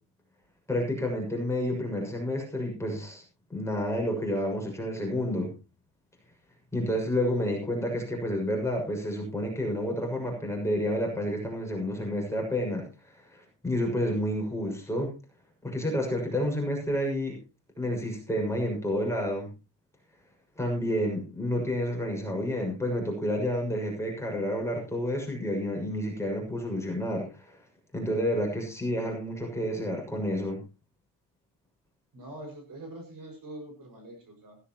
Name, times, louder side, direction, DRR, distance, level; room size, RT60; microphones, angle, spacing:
voice 1, 0.7-3.2 3.5-5.5 6.7-15.1 15.6-17.4 17.8-19.5 20.6-27.6 27.9-30.6, equal, 5° left, 0 dB, 6.4 m, -30 dB
voice 2, 32.1-34.6, right 1 dB, 45° right, 4 dB, 6.0 m, -44 dB
16.0 x 16.0 x 3.0 m, 0.30 s
cardioid pair, 130°, 47 cm